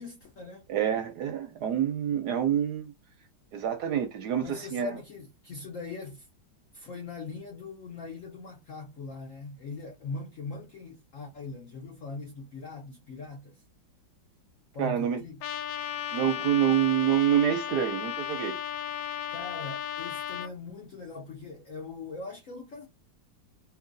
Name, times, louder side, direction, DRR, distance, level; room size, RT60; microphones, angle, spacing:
voice 1, 0.0-0.7 4.4-6.3 6.7-13.6 14.7-15.4 19.3-22.9, left 4 dB, 65° left, 0.8 m, -41 dB
voice 2, 0.7-2.9 3.5-5.0 14.8-15.2 16.1-18.6, right 10 dB, 70° right, 1.0 m, -27 dB
Trumpet, 15.4-20.5, left 10 dB, 85° left, 1.4 m, -35 dB
2.9 x 2.8 x 2.5 m
omnidirectional pair, 2.2 m